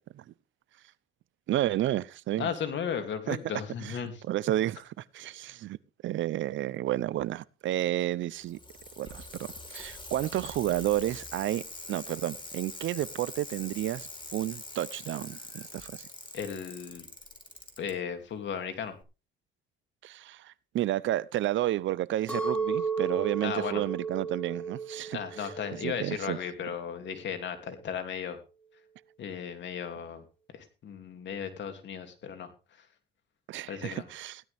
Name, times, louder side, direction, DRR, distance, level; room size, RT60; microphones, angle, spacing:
voice 1, 1.5-2.5 3.3-3.4 3.8-4.0 4.3-5.8 6.0-8.6 9.0-11.6 11.9-16.1 20.0-25.5 25.8-26.4 33.5-34.4, right 13 dB, 75° right, 0.7 m, -31 dB
voice 2, 2.4-4.1 16.3-17.1 17.8-18.9 23.4-23.8 25.1-28.4 29.2-30.2 30.5-32.5 33.7-34.0, left 7 dB, 65° left, 2.8 m, -35 dB
Bicycle, 8.3-17.9 19.0-19.1, left 2 dB, 25° left, 4.0 m, -44 dB
Chink clink, 22.3-26.6 27.0-27.6, right 5 dB, 5° left, 4.0 m, -34 dB
16.0 x 12.0 x 3.5 m
cardioid pair, 90°, 20 cm